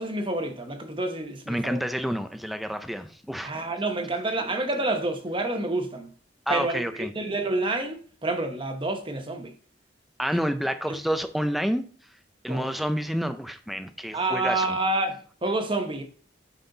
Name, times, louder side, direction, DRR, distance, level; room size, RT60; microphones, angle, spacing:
voice 1, 0.0-1.8 3.4-6.1 6.5-6.8 7.1-9.5 12.5-12.7 14.1-16.0, right 2 dB, 25° right, 1.0 m, -28 dB
voice 2, 1.5-3.6 4.4-4.5 6.5-7.1 10.2-11.8 12.4-14.8, equal, ahead, 0.5 m, -29 dB
9.1 x 4.2 x 3.9 m
head